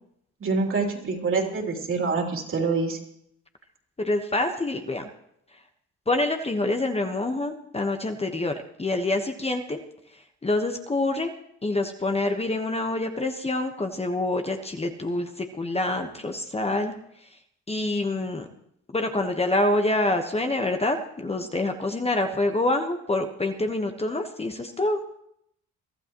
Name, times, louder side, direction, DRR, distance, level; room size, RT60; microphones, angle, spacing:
voice 1, 0.4-3.0, right 4 dB, 45° right, 1 dB, 3.2 m, -26 dB
voice 2, 4.0-5.1 6.1-9.8 10.4-11.3 11.6-16.9 17.7-18.5 18.9-25.0, left 2 dB, 20° left, 5 dB, 1.2 m, -26 dB
23.5 x 12.5 x 3.0 m, 0.72 s
cardioid pair, 90°, 30 cm